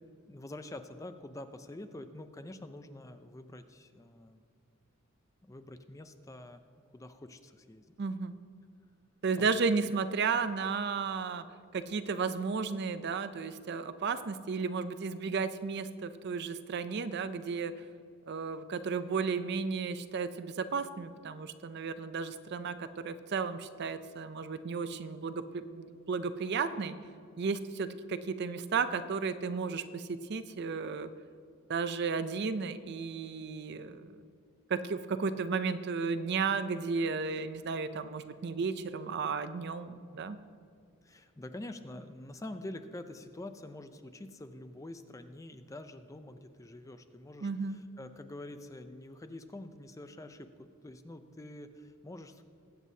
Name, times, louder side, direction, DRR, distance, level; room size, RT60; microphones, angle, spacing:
voice 1, 0.3-4.4 5.4-6.6 6.9-8.0 9.4-9.6 41.0-52.4, left 1 dB, 15° left, 9 dB, 0.4 m, -46 dB
voice 2, 8.0-8.3 9.2-11.4 11.7-17.7 18.3-26.9 27.4-31.1 31.7-34.1 34.7-40.4 47.4-47.8, right 5 dB, 50° right, 11 dB, 0.4 m, -33 dB
20.5 x 8.2 x 2.7 m, 2.4 s
head